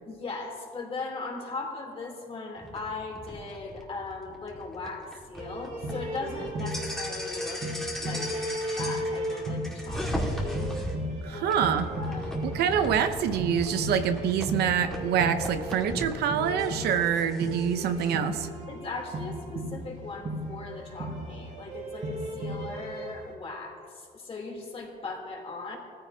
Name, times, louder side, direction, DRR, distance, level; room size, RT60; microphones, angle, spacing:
voice 1, 0.0-8.3 8.8-10.7 11.2-11.6 11.9-12.4 18.7-25.8, left 3 dB, 35° left, -1 dB, 3.3 m, -38 dB
sound 1, 2.6-10.9 11.5-16.1 16.6-18.1, left 1 dB, 5° left, 2.1 m, -37 dB
sound 2, 5.4-23.3, equal, 45° right, 2.9 m, -35 dB
voice 2, 11.2-11.9 12.4-18.5, right 8 dB, 75° right, 9 dB, 0.8 m, -26 dB
20.5 x 14.5 x 2.9 m, 2.2 s
cardioid pair, 110°, 17 cm